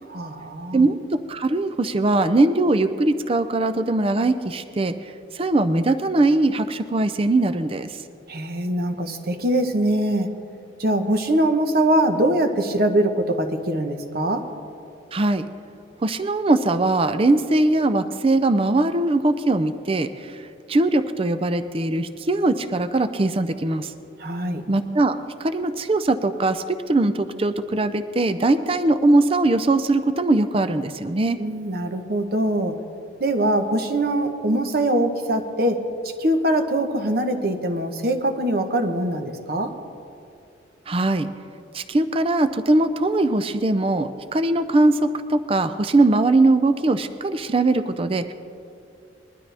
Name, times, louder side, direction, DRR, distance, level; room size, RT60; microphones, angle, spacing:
voice 1, 0.0-0.8 8.3-10.3 10.8-14.4 24.2-24.6 31.4-32.7 33.2-39.7, right 1 dB, 55° right, 6 dB, 1.0 m, -23 dB
voice 2, 0.7-4.9 5.3-8.0 15.1-15.5 16.0-23.9 24.7-31.4 40.9-41.3 41.7-48.3, right 2 dB, 30° right, 11 dB, 0.4 m, -21 dB
21.0 x 12.5 x 3.4 m, 2.6 s
head